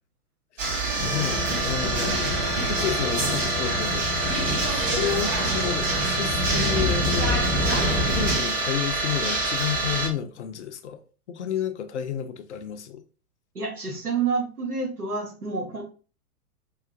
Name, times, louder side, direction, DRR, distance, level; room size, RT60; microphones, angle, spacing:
voice 1, 0.5-7.4 7.8-11.0 11.3-13.0, left 9 dB, 50° left, 0.5 m, -31 dB
sound 1, 0.6-10.1, right 2 dB, 55° right, 1.6 m, -26 dB
sound 2, 1.0-8.4, left 1 dB, 5° right, 0.4 m, -28 dB
voice 2, 13.5-15.8, right 4 dB, 85° right, 1.1 m, -28 dB
4.8 x 2.5 x 2.4 m
figure-of-eight pair, 105°, 44 cm